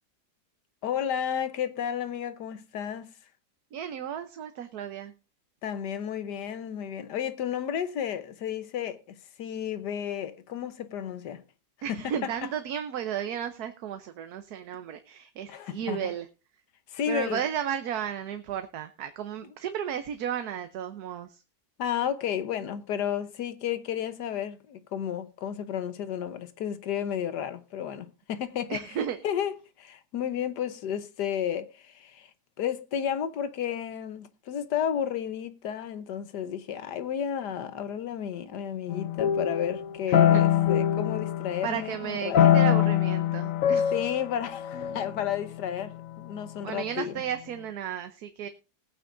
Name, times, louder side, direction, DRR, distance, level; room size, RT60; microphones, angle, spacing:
voice 1, 0.8-3.1 5.6-11.4 11.9-12.3 15.5-16.0 16.9-17.4 19.4-19.5 21.8-28.8 29.2-32.3 32.6-42.6 43.9-47.2, left 9 dB, 85° left, 1.5 m, -32 dB
voice 2, 3.7-5.1 11.8-16.3 17.1-21.4 28.7-29.2 40.3-40.4 41.6-43.9 46.6-48.5, right 9 dB, 70° right, 1.3 m, -33 dB
sound 1, 38.9-41.9 42.3-46.2, left 10 dB, 60° left, 1.0 m, -24 dB
20.0 x 9.1 x 2.6 m
omnidirectional pair, 1.7 m